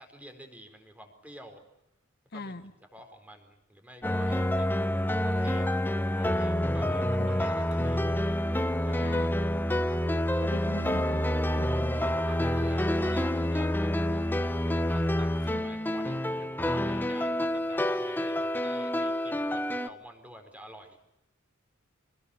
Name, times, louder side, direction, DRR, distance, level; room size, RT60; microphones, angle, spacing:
voice 1, 0.0-1.6 2.3-2.5 2.9-4.8 5.2-5.7 6.1-8.0 8.8-9.3 12.3-14.2 14.7-21.0, equal, 5° right, 5 dB, 4.4 m, -49 dB
voice 2, 2.3-2.7 7.2-7.4 7.8-8.2 9.0-9.4 10.4-11.3 11.5-11.9 15.5-15.6, left 2 dB, 50° left, 9 dB, 1.1 m, -40 dB
sound 1, 4.0-19.9, left 1 dB, 10° left, 1.0 m, -28 dB
25.5 x 20.5 x 8.5 m, 0.85 s
head